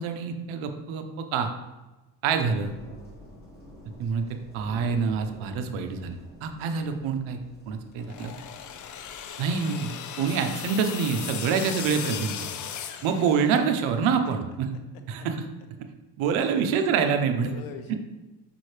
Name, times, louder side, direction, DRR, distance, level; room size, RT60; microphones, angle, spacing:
voice 1, 0.0-1.5 2.2-2.7 4.0-6.2 6.4-7.4 7.7-8.3 9.4-9.9 10.2-12.3 13.0-14.7 15.1-15.4 16.2-17.5 17.9-18.0, right 6 dB, 85° right, 6 dB, 0.9 m, -26 dB
sound 1, 2.6-9.3, left 1 dB, 20° left, 1.4 m, -49 dB
sound 2, 8.0-13.8, left 9 dB, 40° left, 0.5 m, -37 dB
voice 2, 12.5-13.0 14.3-14.4 16.4-16.6 17.3-18.0, left 5 dB, 85° left, 7 dB, 0.9 m, -43 dB
6.1 x 5.5 x 3.3 m, 1.1 s
cardioid pair, 145°, 47 cm